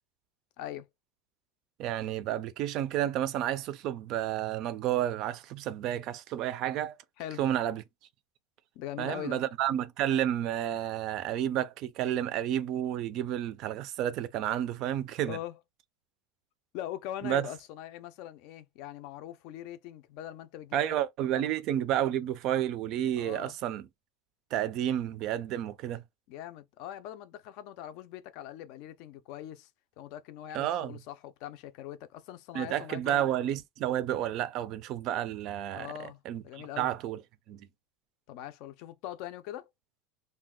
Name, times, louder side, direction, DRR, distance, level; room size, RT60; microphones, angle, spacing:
voice 1, 0.6-0.9 7.2-7.4 8.8-9.4 15.2-15.6 16.7-21.0 21.3-21.6 23.2-23.6 26.3-29.7 30.0-33.3 35.7-36.9 38.3-39.7, left 12 dB, 50° left, 0.5 m, -42 dB
voice 2, 1.8-6.9 7.4-7.8 9.0-15.4 17.2-17.5 20.7-23.8 24.5-26.0 30.5-30.9 32.5-36.4 36.8-37.2 37.5-37.7, right 11 dB, 40° right, 0.4 m, -31 dB
2.7 x 2.2 x 3.6 m
supercardioid pair, 160°, 0 cm